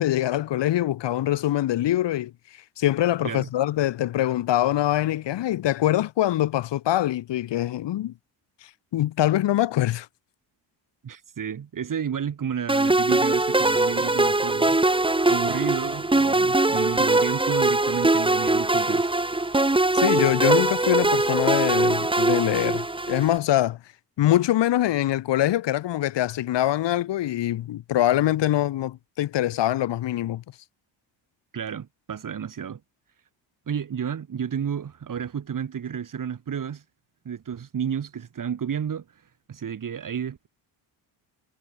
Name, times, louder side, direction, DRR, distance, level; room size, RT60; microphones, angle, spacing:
voice 1, 0.0-8.1 8.6-10.1 19.9-23.8 24.2-30.4, left 13 dB, 70° left, 2.3 m, -24 dB
voice 2, 11.0-19.1 31.5-32.8 33.7-36.8 37.2-39.2 39.5-40.5, right 8 dB, 45° right, 6.1 m, -31 dB
sound 1, 12.7-23.4, right 2 dB, 10° right, 4.2 m, -22 dB
cardioid pair, 120°, 45 cm